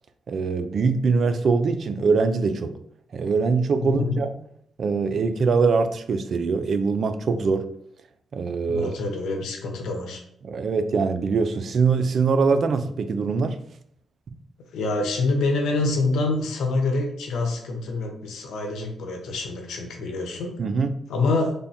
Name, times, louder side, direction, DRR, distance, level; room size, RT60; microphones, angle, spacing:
voice 1, 0.3-2.8 3.1-4.3 4.8-7.7 8.3-8.9 10.4-13.6 20.6-21.0, right 4 dB, 60° right, 0.4 m, -23 dB
voice 2, 3.8-4.2 8.7-10.2 14.7-20.6 21.1-21.5, left 3 dB, 90° left, 0.8 m, -26 dB
3.4 x 2.2 x 4.1 m
cardioid pair, 80°, 0 cm